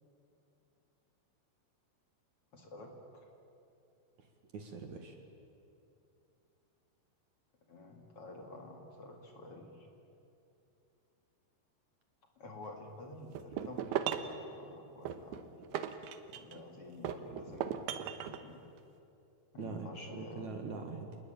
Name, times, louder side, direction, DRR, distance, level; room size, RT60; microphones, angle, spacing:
voice 1, 2.5-3.3 7.7-9.9 12.4-15.6 16.3-17.8 18.4-18.6 19.5-20.5, left 2 dB, 40° left, 2 dB, 2.5 m, -49 dB
voice 2, 4.5-5.2 19.6-21.2, right 4 dB, 55° right, 5 dB, 2.3 m, -43 dB
sound 1, 13.3-14.4 15.1-16.6 17.0-18.4, right 9 dB, 75° right, 2.9 m, -37 dB
28.0 x 20.5 x 9.1 m, 2.7 s
omnidirectional pair, 5.1 m